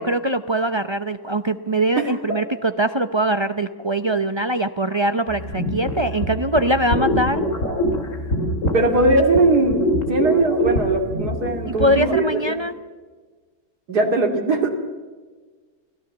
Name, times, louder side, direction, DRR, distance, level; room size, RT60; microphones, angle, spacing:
voice 1, 0.0-7.4 11.7-12.7, right 1 dB, 45° right, 9 dB, 0.3 m, -22 dB
sound 1, 5.3-12.2, left 1 dB, 55° left, 3.4 m, -24 dB
voice 2, 8.7-12.6 13.9-14.7, right 2 dB, 85° right, 2 dB, 3.2 m, -20 dB
25.0 x 17.0 x 7.1 m, 1.4 s
omnidirectional pair, 1.6 m